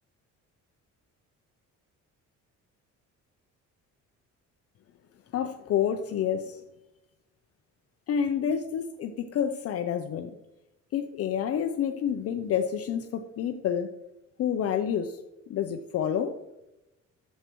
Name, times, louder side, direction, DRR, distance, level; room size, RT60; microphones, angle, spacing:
voice 1, 5.3-6.6 8.1-10.3 10.9-13.9 14.4-15.2 15.5-16.4, left 8 dB, 50° left, 6 dB, 0.5 m, -28 dB
11.0 x 7.3 x 3.0 m, 0.94 s
cardioid pair, 165°, 31 cm